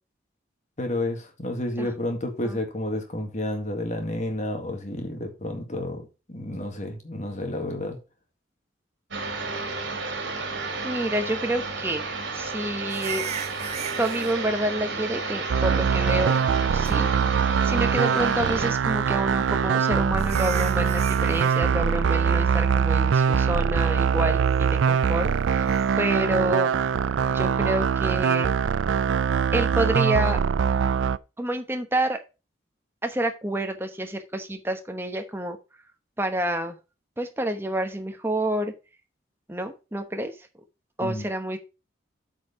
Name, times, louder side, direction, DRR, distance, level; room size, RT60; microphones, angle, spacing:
voice 1, 0.8-8.0 41.0-41.2, left 1 dB, 40° left, 1.9 m, -30 dB
sound 1, 9.1-18.7, right 3 dB, 70° right, 2.6 m, -32 dB
voice 2, 10.8-12.1 12.3-13.2 14.0-16.4 16.7-25.7 26.0-26.7 27.3-28.5 29.5-30.4 31.4-32.2 33.0-35.6 36.2-36.8 37.2-38.7 39.5-40.4 41.0-41.6, right 1 dB, 10° right, 1.0 m, -28 dB
sound 2, 12.9-14.3 16.0-16.6 16.8-17.0 17.6-18.1 19.5-19.6 20.2-21.6 25.7-25.9, right 8 dB, 35° right, 0.7 m, -37 dB
sound 3, 15.5-31.2, right 6 dB, 85° right, 0.4 m, -23 dB
8.3 x 4.8 x 5.6 m
head